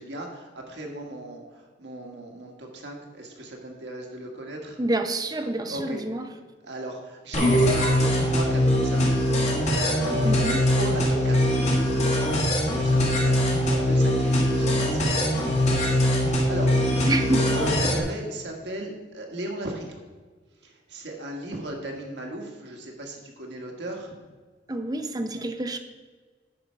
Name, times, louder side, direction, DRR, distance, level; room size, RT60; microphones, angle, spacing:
voice 1, 0.0-4.9 5.7-6.0 6.6-9.2 9.7-11.9 12.6-19.8 20.6-24.2, right 1 dB, 70° right, 1 dB, 1.7 m, -37 dB
voice 2, 4.8-6.3 10.2-10.6 17.1-17.6 24.7-25.8, right 1 dB, 20° right, 7 dB, 0.6 m, -27 dB
sound 1, 7.3-18.0, left 1 dB, 40° left, 1.5 m, -22 dB
10.5 x 5.5 x 4.6 m, 1.4 s
head